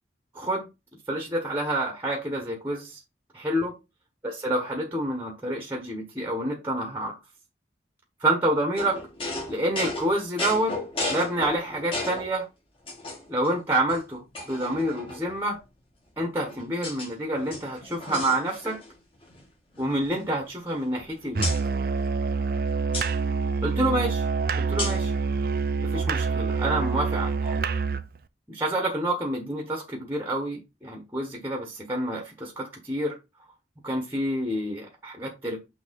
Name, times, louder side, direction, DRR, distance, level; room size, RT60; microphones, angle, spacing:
voice 1, 1.1-3.0 3.3-3.7 4.2-7.2 8.2-9.0 9.5-10.7 11.1-12.5 13.3-15.6 16.2-18.8 19.8-21.5 23.6-24.2 24.7-25.1 25.8-27.6 28.5-33.2 33.8-35.6, right 1 dB, 15° right, 1.2 m, -28 dB
sound 1, 8.8-12.3 12.9-13.5 13.9-14.0 14.3-15.4 16.2-17.1 17.4-19.0 19.2-19.4 19.7-21.0 21.4-21.6 22.9-23.1 24.8-25.1, left 2 dB, 30° left, 2.0 m, -34 dB
Musical instrument, 21.3-28.1, right 5 dB, 50° right, 0.5 m, -26 dB
6.1 x 3.1 x 5.3 m
head